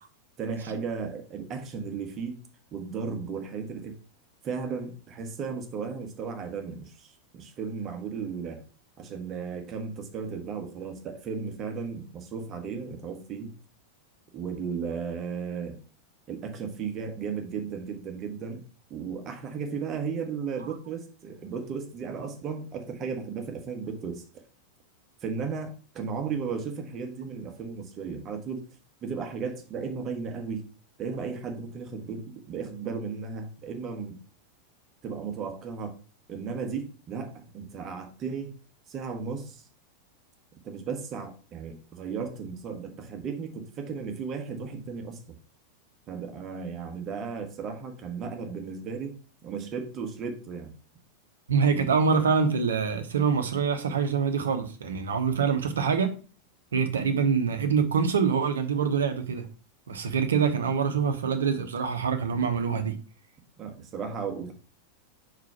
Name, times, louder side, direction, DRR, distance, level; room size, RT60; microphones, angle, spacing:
voice 1, 0.4-2.4 2.7-4.0 4.4-8.6 9.0-13.5 14.3-15.8 16.3-18.6 18.9-24.2 25.2-28.7 29.0-30.6 31.0-34.2 35.0-35.9 36.3-38.5 38.9-39.7 40.6-45.4 46.1-50.7 63.6-64.5, right 5 dB, 30° right, 1.4 m, -35 dB
voice 2, 51.5-56.1 56.7-59.5 59.9-63.0, right 6 dB, 65° right, 1.0 m, -25 dB
4.8 x 4.6 x 5.9 m
figure-of-eight pair, 90°, 0 cm